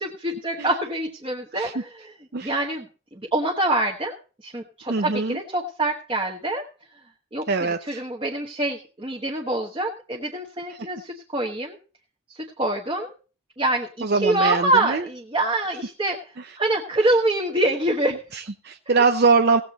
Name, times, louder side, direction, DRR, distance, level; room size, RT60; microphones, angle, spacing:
voice 1, 0.0-2.1 2.4-2.9 3.1-6.6 7.3-11.8 12.3-13.1 13.6-16.2 16.6-18.2, right 1 dB, 25° right, 1 dB, 1.2 m, -25 dB
voice 2, 4.9-5.4 7.5-8.0 10.7-10.9 14.0-15.1 18.3-19.6, right 4 dB, 55° right, 7 dB, 0.6 m, -22 dB
17.0 x 7.7 x 4.1 m, 0.36 s
head